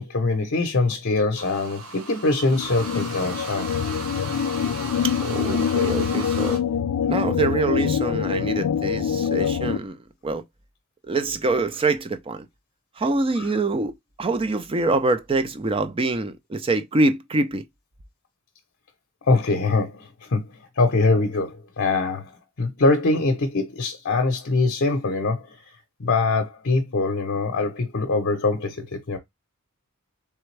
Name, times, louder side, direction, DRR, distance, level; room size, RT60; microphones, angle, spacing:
voice 1, 0.0-3.7 13.4-13.5 19.2-20.4 20.8-25.6 26.0-29.2, left 3 dB, 55° left, 0.7 m, -23 dB
sound 1, 1.4-6.6, right 4 dB, 70° right, 1.1 m, -36 dB
sound 2, 2.5-9.8, left 8 dB, 90° left, 0.3 m, -25 dB
voice 2, 5.2-6.6 7.1-10.4 11.1-12.5 13.0-17.6, right 3 dB, 25° right, 0.4 m, -25 dB
3.4 x 3.4 x 3.2 m
head